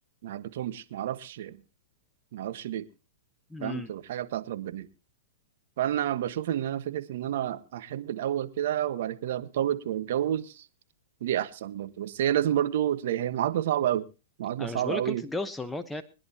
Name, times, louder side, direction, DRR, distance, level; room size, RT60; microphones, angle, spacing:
voice 1, 0.2-1.6 2.3-2.8 3.6-4.9 5.8-10.6 11.2-14.0 14.4-15.2, right 11 dB, 65° right, 12 dB, 1.3 m, -29 dB
voice 2, 3.5-3.9 14.6-16.0, left 2 dB, 5° left, 8 dB, 0.9 m, -34 dB
23.0 x 10.5 x 2.9 m, 0.31 s
hypercardioid pair, 125°, 0 cm